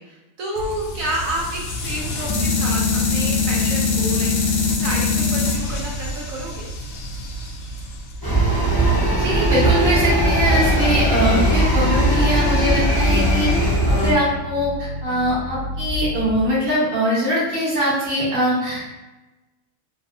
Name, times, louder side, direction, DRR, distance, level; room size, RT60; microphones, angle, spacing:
voice 1, 0.0-6.6, right 1 dB, 75° right, -3 dB, 1.0 m, -30 dB
sound 1, 0.6-8.7, left 4 dB, 70° left, 0.9 m, -24 dB
sound 2, 8.2-14.1, right 1 dB, 25° left, 0.5 m, -18 dB
voice 2, 9.1-13.5 13.9-18.9, equal, 45° right, -7 dB, 1.1 m, -22 dB
sound 3, 9.3-16.4, left 2 dB, 90° right, 1.2 m, -31 dB
3.4 x 2.1 x 2.6 m, 1.1 s
omnidirectional pair, 1.5 m